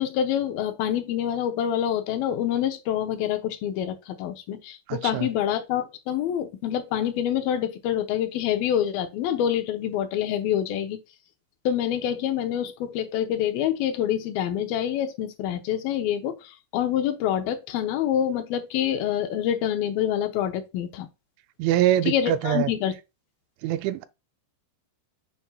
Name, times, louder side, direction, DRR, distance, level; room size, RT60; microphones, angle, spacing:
voice 1, 0.0-11.0 11.7-21.1 22.0-22.9, left 10 dB, 80° left, 2.1 m, -26 dB
voice 2, 4.9-5.3 21.6-22.7 23.6-24.1, right 12 dB, 85° right, 3.0 m, -24 dB
7.0 x 5.8 x 2.3 m
omnidirectional pair, 5.2 m